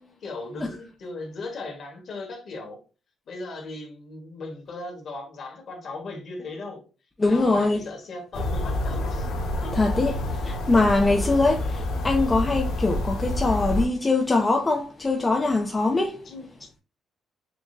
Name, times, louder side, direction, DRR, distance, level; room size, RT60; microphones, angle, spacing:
voice 1, 0.0-2.8 3.3-6.8 7.3-9.3 9.6-9.7 16.2-16.5, left 2 dB, 50° left, 1.4 m, -37 dB
voice 2, 7.2-7.8 9.7-16.3, left 3 dB, 20° left, 0.4 m, -23 dB
sound 1, 8.3-13.9, left 1 dB, 85° left, 1.2 m, -28 dB
5.8 x 2.1 x 2.5 m
cardioid pair, 150°, 0 cm